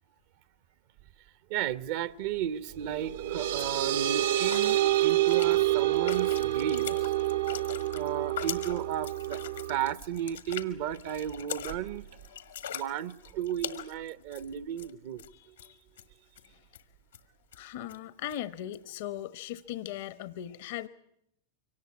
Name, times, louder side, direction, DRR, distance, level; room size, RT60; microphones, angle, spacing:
voice 1, 1.5-7.1 7.9-9.4 9.7-12.1 12.7-15.6, right 10 dB, 60° right, 0.8 m, -34 dB
sound 1, 2.8-10.0, right 14 dB, 80° right, 1.2 m, -28 dB
sound 2, 2.9-3.1 3.4-3.8 4.4-14.9 15.2-15.3 15.6-16.0 16.4-16.5 16.7-16.8 17.1-17.2 17.5-17.6 17.9-18.0 18.3-18.4 18.7-18.8, left 9 dB, 85° left, 1.7 m, -42 dB
voice 2, 15.3-15.8 16.5-16.6 17.5-20.9, left 11 dB, 65° left, 0.9 m, -39 dB
24.0 x 18.5 x 9.6 m
hypercardioid pair, 100°, 0 cm